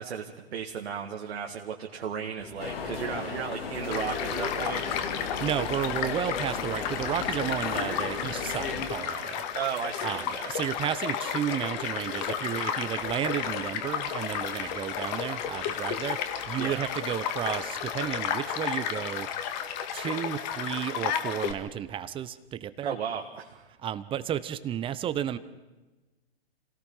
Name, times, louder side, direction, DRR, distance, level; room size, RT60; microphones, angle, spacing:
voice 1, 0.0-4.9 9.5-10.5 16.6-16.8 22.8-23.7, right 7 dB, 70° right, 1 dB, 2.0 m, -35 dB
sound 1, 2.4-18.2, left 2 dB, 10° left, 3.1 m, -51 dB
sound 2, 2.6-8.9, left 5 dB, 60° left, 3.4 m, -35 dB
Child speech kid speaking / Stream / Car passing by, 3.9-21.5, left 8 dB, 40° left, 2.0 m, -33 dB
voice 2, 5.3-9.4 10.0-19.6 19.9-23.0 23.8-25.4, right 10 dB, 15° right, 14 dB, 0.7 m, -32 dB
27.5 x 18.0 x 5.6 m, 1.1 s
hypercardioid pair, 125°, 33 cm